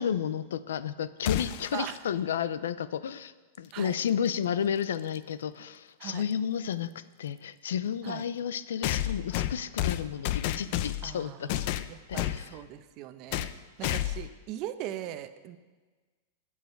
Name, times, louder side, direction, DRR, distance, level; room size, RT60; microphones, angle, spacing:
voice 1, 0.0-12.6, left 8 dB, 90° left, 15 dB, 0.6 m, -32 dB
sound 1, 1.3-1.8 3.9-4.0 5.1-5.2 8.8-11.1 11.5-12.4 13.3-13.6 13.8-14.3, left 13 dB, 50° left, 0.6 m, -30 dB
voice 2, 11.0-13.5 13.8-15.6, right 12 dB, 40° right, 10 dB, 0.8 m, -40 dB
20.5 x 7.4 x 4.6 m, 1.3 s
supercardioid pair, 145°, 0 cm